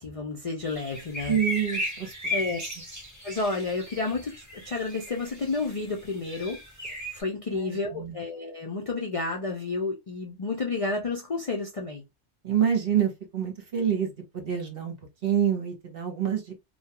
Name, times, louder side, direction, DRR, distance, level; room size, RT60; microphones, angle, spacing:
voice 1, 0.0-1.4 2.3-2.6 3.2-12.0, left 3 dB, 45° left, 0.4 m, -31 dB
sound 1, 0.6-7.2, left 1 dB, 15° right, 1.2 m, -36 dB
voice 2, 1.3-2.1 7.5-8.2 12.4-14.9 15.2-16.5, right 8 dB, 55° right, 1.0 m, -27 dB
2.3 x 2.3 x 2.8 m
omnidirectional pair, 1.2 m